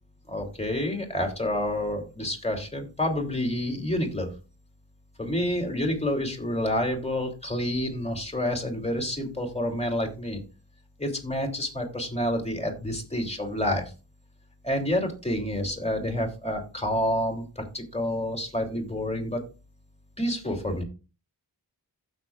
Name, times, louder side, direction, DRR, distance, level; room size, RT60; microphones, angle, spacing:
voice 1, 0.3-4.3 5.2-10.4 11.0-13.9 14.6-19.4 20.2-20.8, left 1 dB, 15° left, 2 dB, 3.0 m, -28 dB
15.0 x 6.4 x 2.4 m, 0.33 s
wide cardioid pair, 70°, 41 cm